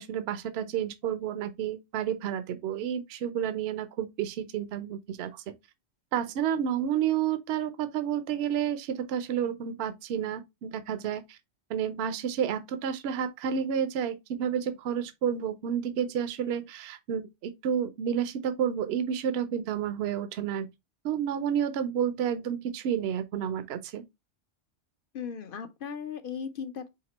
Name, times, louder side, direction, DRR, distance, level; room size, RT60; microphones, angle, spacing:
voice 1, 0.0-5.4 6.1-11.4 11.7-20.7 21.0-24.0, right 8 dB, 65° right, 0.8 m, -30 dB
voice 2, 25.1-26.9, left 7 dB, 55° left, 0.8 m, -37 dB
5.0 x 3.6 x 2.9 m
omnidirectional pair, 1.2 m